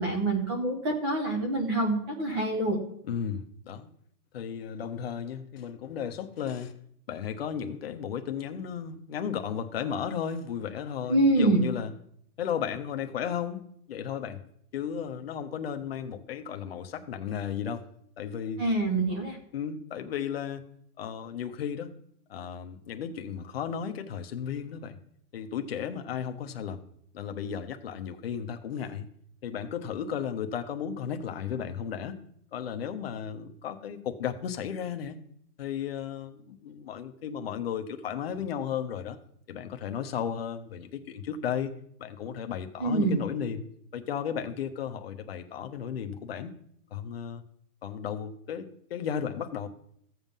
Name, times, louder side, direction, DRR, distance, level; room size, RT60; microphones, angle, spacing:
voice 1, 0.0-2.8 11.1-11.6 18.6-19.4 42.8-43.2, right 2 dB, 15° right, 3 dB, 0.8 m, -25 dB
voice 2, 3.1-3.9 4.3-6.7 7.1-11.9 12.4-13.6 13.9-14.4 14.7-17.8 18.2-18.6 19.5-20.6 21.0-21.9 22.3-25.0 25.3-26.8 27.1-29.1 29.4-32.2 32.5-35.2 35.6-39.2 39.5-41.7 42.0-46.5 46.9-47.4 47.8-49.7, left 8 dB, 40° left, 7 dB, 0.9 m, -34 dB
14.5 x 7.5 x 5.4 m, 0.69 s
hypercardioid pair, 170°, 49 cm